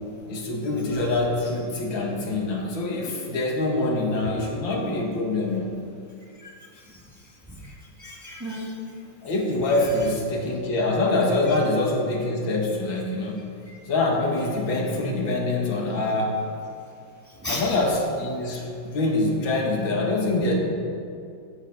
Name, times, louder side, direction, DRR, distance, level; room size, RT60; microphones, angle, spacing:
voice 1, 0.3-5.7 9.2-13.4 13.9-16.4 17.5-20.5, left 2 dB, 80° left, 0 dB, 2.4 m, -25 dB
voice 2, 0.9-1.3 6.4-7.7 8.0-8.7 13.7-13.8 17.3-17.7, left 1 dB, 10° right, -3 dB, 1.5 m, -36 dB
13.5 x 8.3 x 5.3 m, 2.5 s
omnidirectional pair, 2.1 m